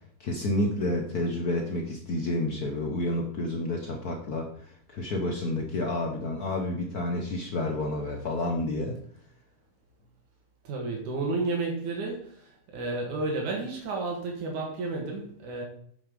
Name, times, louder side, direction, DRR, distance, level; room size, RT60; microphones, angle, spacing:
voice 1, 0.2-9.0, left 1 dB, 75° left, 2 dB, 0.8 m, -30 dB
voice 2, 10.6-12.4 12.7-15.6, right 3 dB, 85° right, 0 dB, 3.4 m, -31 dB
8.6 x 7.0 x 5.2 m, 0.62 s
omnidirectional pair, 3.4 m